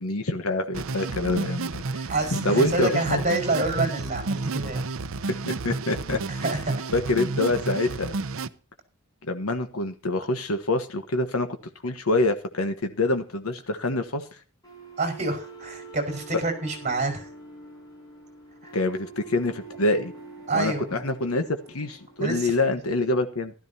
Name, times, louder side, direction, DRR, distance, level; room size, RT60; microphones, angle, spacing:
voice 1, 0.0-3.2 5.3-6.4 6.9-8.1 9.2-11.5 11.8-14.3 18.7-20.1 20.5-23.5, left 2 dB, 90° left, 7 dB, 1.2 m, -26 dB
sound 1, 0.7-8.5, right 3 dB, 70° right, 0.7 m, -31 dB
voice 2, 2.1-4.9 6.3-6.8 15.0-17.3 18.6-18.7 20.5-20.9 22.2-22.5, right 2 dB, 35° right, 4 dB, 4.9 m, -27 dB
sound 2, 14.6-22.6, right 3 dB, 20° left, 5.9 m, -45 dB
15.5 x 13.0 x 2.8 m, 0.37 s
head